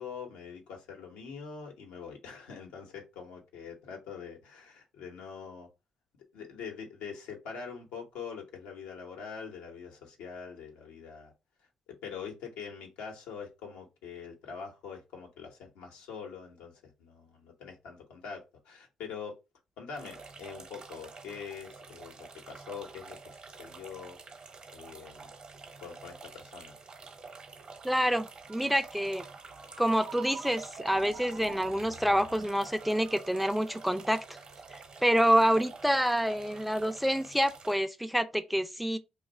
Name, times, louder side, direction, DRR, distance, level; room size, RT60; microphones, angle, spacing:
voice 1, 0.0-5.7 6.3-11.3 11.6-19.4 19.8-24.2 24.7-25.3 25.8-26.8 35.2-35.6, left 6 dB, 90° left, 1.0 m, -44 dB
sound 1, 19.9-37.8, right 4 dB, 45° right, 0.8 m, -49 dB
voice 2, 27.8-29.2 29.8-34.2 34.7-39.0, equal, ahead, 0.5 m, -27 dB
Ringtone, 28.5-36.0, right 5 dB, 70° right, 0.6 m, -48 dB
sound 2, 30.8-32.6, left 4 dB, 50° left, 0.7 m, -53 dB
2.6 x 2.4 x 4.1 m
supercardioid pair, 65°, 2 cm